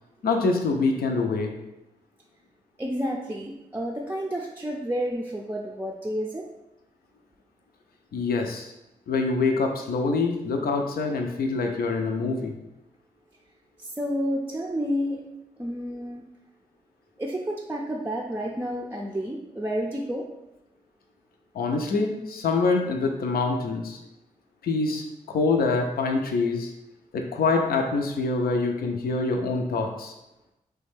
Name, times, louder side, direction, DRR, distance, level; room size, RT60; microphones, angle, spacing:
voice 1, 0.2-1.5 8.1-8.7 9.1-12.5 21.5-24.0 24.6-26.7 27.1-30.1, left 3 dB, 75° left, 3 dB, 0.5 m, -25 dB
voice 2, 2.8-6.5 13.8-15.2 15.6-16.2 17.2-20.3, equal, 15° right, -1 dB, 0.4 m, -30 dB
3.3 x 2.2 x 3.2 m, 0.93 s
supercardioid pair, 40°, 16 cm